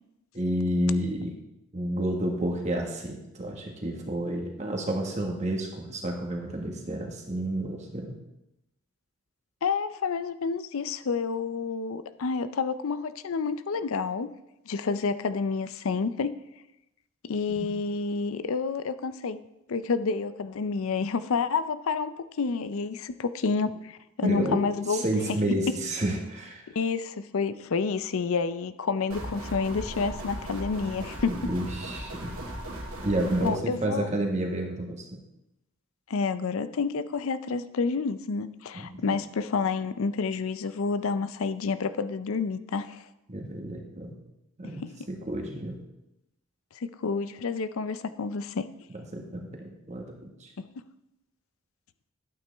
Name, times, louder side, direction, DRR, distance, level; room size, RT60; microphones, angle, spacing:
voice 1, 0.3-1.3 1.7-8.1 17.5-17.7 24.2-26.6 31.3-32.4 33.0-35.2 38.7-39.1 43.3-44.1 44.6-45.8 48.9-50.5, right 1 dB, 30° right, 2 dB, 1.6 m, -30 dB
voice 2, 9.6-14.3 14.7-16.4 17.2-19.4 19.7-25.0 26.7-31.5 33.4-34.1 36.1-43.0 44.8-45.1 46.8-48.7 50.6-50.7, left 4 dB, 70° left, 13 dB, 0.5 m, -29 dB
sound 1, 29.1-33.5, right 1 dB, 70° right, 2.1 m, -37 dB
11.5 x 9.0 x 3.4 m, 0.89 s
head